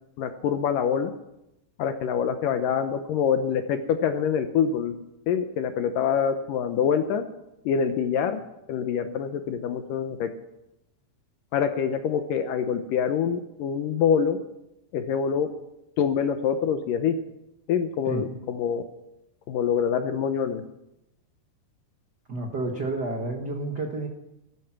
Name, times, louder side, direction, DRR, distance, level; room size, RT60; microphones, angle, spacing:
voice 1, 0.2-1.1 1.8-4.9 5.3-7.2 7.7-8.4 8.7-10.3 11.5-14.4 14.9-15.5 16.0-17.2 17.7-18.8 19.5-20.6, left 7 dB, 70° left, 8 dB, 2.2 m, -25 dB
voice 2, 22.3-24.1, right 2 dB, 90° right, 2 dB, 0.9 m, -30 dB
17.5 x 14.0 x 6.0 m, 0.88 s
omnidirectional pair, 4.8 m